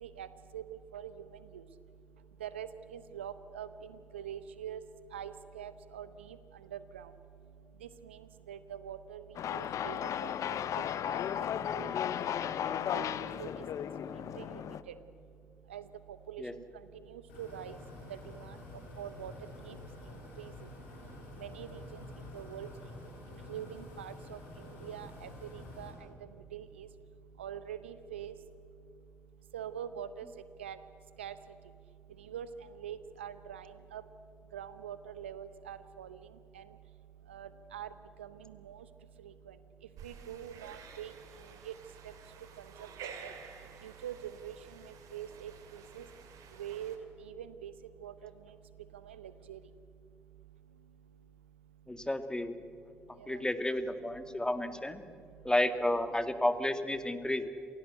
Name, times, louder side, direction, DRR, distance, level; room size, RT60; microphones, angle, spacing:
voice 1, 2.4-3.7 4.1-4.8 5.1-6.1 6.7-7.0 8.5-9.2 9.5-10.3 11.1-11.2 11.8-11.9 12.9-13.1 13.4-13.5 14.4-14.5 15.7-15.8 16.3-16.4 17.1-17.8 18.4-18.5 19.0-19.3 19.7-19.8 20.4-20.5 21.4-21.8 22.3-22.7 23.5-24.4 24.8-25.3 25.8-25.9 26.5-26.9 27.4-28.3 29.5-30.3 30.6-30.8 31.2-31.3 32.3-32.5 32.8-33.7 33.9-34.0 34.5-36.2 36.6-36.7 37.3-37.9 38.2-38.3 38.7-38.8 40.0-41.1 41.7-41.8 43.0-43.1 43.8-44.1 44.4-44.5 45.1-45.5 46.0-46.1 46.6-47.0 47.3-47.7 48.0-48.1 49.1-49.6 53.3-53.4, right 10 dB, 90° right, 13 dB, 0.8 m, -43 dB
sound 1, 9.3-14.8, left 9 dB, 60° left, 0.9 m, -35 dB
sound 2, 17.3-25.9, left 2 dB, 85° left, 4.6 m, -49 dB
sound 3, 40.0-47.0, right 6 dB, 70° right, 2.4 m, -51 dB
voice 2, 51.9-52.5 53.3-55.0 55.4-57.5, left 1 dB, 10° left, 10 dB, 2.0 m, -31 dB
27.5 x 16.5 x 8.1 m, 2.5 s
hypercardioid pair, 40°, 6 cm